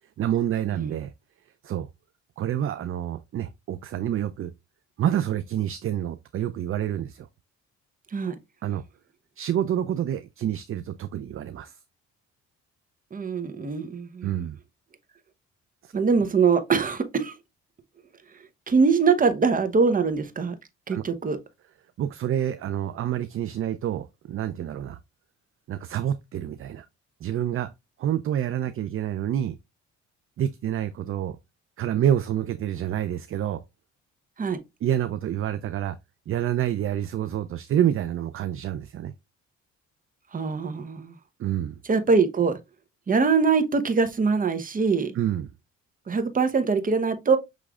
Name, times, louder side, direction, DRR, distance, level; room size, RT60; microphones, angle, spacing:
voice 1, 0.2-1.1 1.6-1.9 2.4-4.5 5.0-7.3 8.6-8.8 9.4-11.8 14.2-14.6 15.8-15.9 16.2-16.3 20.9-21.0 22.0-25.0 25.7-26.9 27.2-27.7 28.0-29.6 30.4-31.4 31.8-33.6 34.8-36.0 36.3-39.1 41.4-41.7 45.1-45.5, right 10 dB, 45° right, 0.4 m, -28 dB
voice 2, 13.1-14.3 15.9-17.3 18.7-20.5 20.9-21.4 34.4-34.6 40.3-41.2 41.9-42.6 43.1-45.2 46.1-47.4, right 5 dB, 30° right, 0.8 m, -23 dB
6.2 x 3.2 x 2.3 m
cardioid pair, 90°, 30 cm